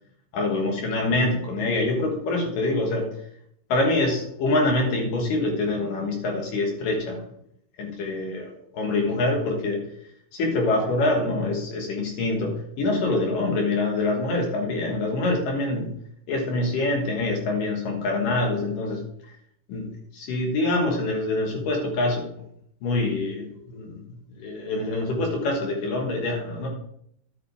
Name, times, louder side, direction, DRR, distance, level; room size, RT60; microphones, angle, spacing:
voice 1, 0.3-3.1 3.7-7.2 7.8-9.8 10.3-15.9 16.3-19.0 19.7-22.2 22.8-24.0 24.4-26.7, left 2 dB, 60° left, 2 dB, 2.6 m, -25 dB
11.5 x 8.4 x 3.5 m, 0.71 s
omnidirectional pair, 5.1 m